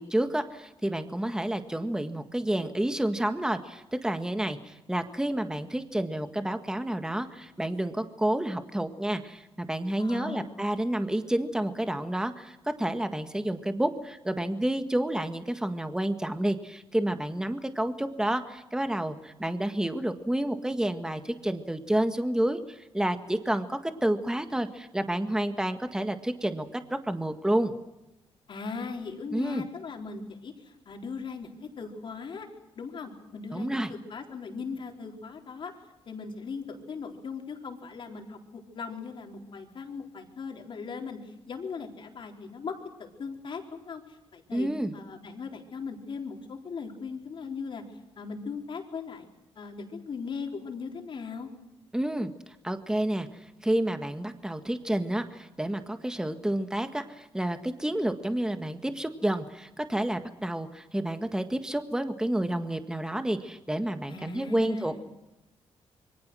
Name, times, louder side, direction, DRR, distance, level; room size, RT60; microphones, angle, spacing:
voice 1, 0.0-27.7 29.3-29.6 33.5-33.9 44.5-44.9 51.9-52.3 52.6-53.3 53.6-65.1, right 1 dB, 5° right, 8 dB, 1.7 m, -29 dB
voice 2, 10.0-10.5 28.5-32.5 32.8-35.7 36.1-44.0 44.3-47.8 48.2-49.3 49.6-51.5 64.1-65.0, left 5 dB, 50° left, 2 dB, 4.1 m, -39 dB
27.0 x 23.5 x 6.3 m, 0.93 s
cardioid pair, 110°, 10 cm